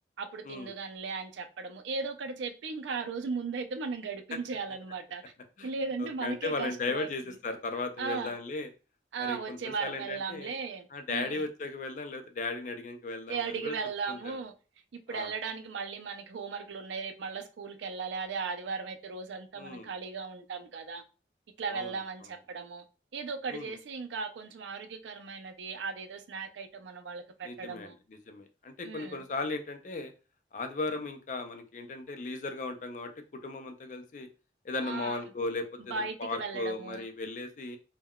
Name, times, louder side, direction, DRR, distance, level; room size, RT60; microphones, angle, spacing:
voice 1, 0.2-5.2 5.6-7.1 8.0-8.3 9.1-11.5 13.3-14.5 14.9-21.0 21.6-22.8 23.1-28.0 28.8-29.2 34.8-35.2 35.9-37.1, right 5 dB, 90° right, 0.4 m, -37 dB
voice 2, 6.0-8.7 9.2-10.5 10.9-13.7 14.1-14.3 15.1-15.3 19.6-19.9 21.7-21.9 23.5-23.7 27.4-30.1 30.5-33.1 33.4-34.3 34.6-37.8, left 3 dB, 45° left, 0.4 m, -36 dB
3.6 x 2.2 x 2.2 m
head